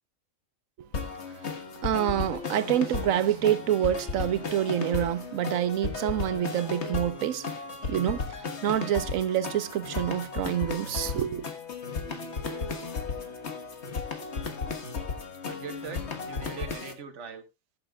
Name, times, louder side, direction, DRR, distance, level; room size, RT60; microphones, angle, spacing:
sound 1, 0.9-16.9, left 4 dB, 60° left, 1.6 m, -35 dB
voice 1, 1.8-7.5 7.9-11.5, right 11 dB, 90° right, 1.2 m, -27 dB
voice 2, 15.4-17.5, right 6 dB, 65° right, 1.5 m, -41 dB
19.5 x 7.5 x 2.3 m
omnidirectional pair, 1.4 m